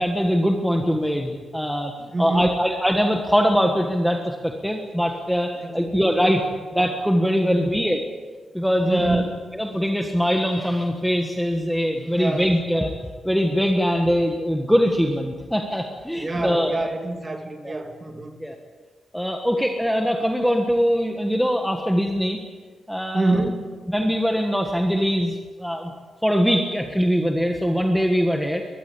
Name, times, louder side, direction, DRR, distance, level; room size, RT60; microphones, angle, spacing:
voice 1, 0.0-6.4 6.7-8.0 8.5-9.2 9.5-12.9 13.2-16.7 17.6-17.7 18.4-18.5 19.1-22.4 22.9-23.4 23.9-25.9 26.2-28.6, equal, ahead, 3 dB, 1.5 m, -22 dB
voice 2, 2.1-2.6 5.6-6.0 7.4-7.7 8.8-9.2 12.2-12.5 16.1-18.3 23.1-23.7, right 2 dB, 20° right, 4 dB, 2.7 m, -26 dB
23.0 x 21.5 x 8.6 m, 1.5 s
wide cardioid pair, 175°, 0 cm